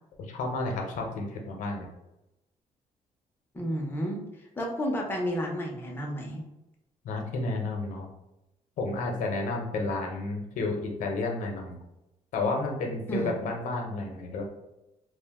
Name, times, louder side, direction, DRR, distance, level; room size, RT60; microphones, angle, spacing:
voice 1, 0.2-1.9 7.0-8.1 8.8-11.8 12.3-14.4, left 3 dB, 75° left, 1 dB, 0.7 m, -31 dB
voice 2, 3.5-4.2 4.6-6.4 13.1-13.3, equal, 15° left, 0 dB, 0.6 m, -31 dB
2.4 x 2.1 x 3.4 m, 0.92 s
cardioid pair, 140°, 13 cm